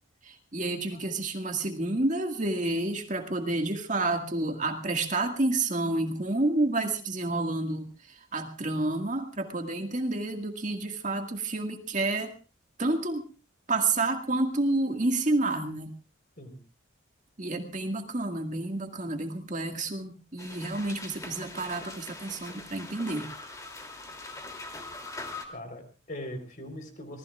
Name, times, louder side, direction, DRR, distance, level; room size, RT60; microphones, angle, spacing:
voice 1, 0.2-12.3 12.8-13.3 13.7-15.9 17.4-23.3, right 2 dB, 40° right, 4 dB, 1.9 m, -29 dB
sound 1, 20.4-25.5, left 2 dB, 15° left, 2.8 m, -42 dB
voice 2, 25.5-27.2, left 1 dB, 45° left, 7 dB, 3.9 m, -41 dB
26.0 x 19.0 x 2.4 m, 0.35 s
head